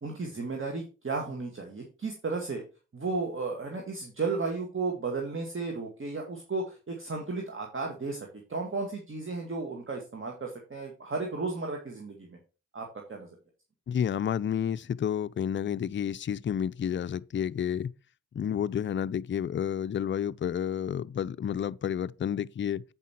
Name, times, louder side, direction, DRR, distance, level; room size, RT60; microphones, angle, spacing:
voice 1, 0.0-2.6 2.9-12.4 12.7-13.3, right 3 dB, 35° right, 2.1 m, -34 dB
voice 2, 13.9-17.9 18.3-22.8, left 9 dB, 35° left, 0.5 m, -30 dB
8.4 x 5.5 x 4.4 m
supercardioid pair, 55°, 36 cm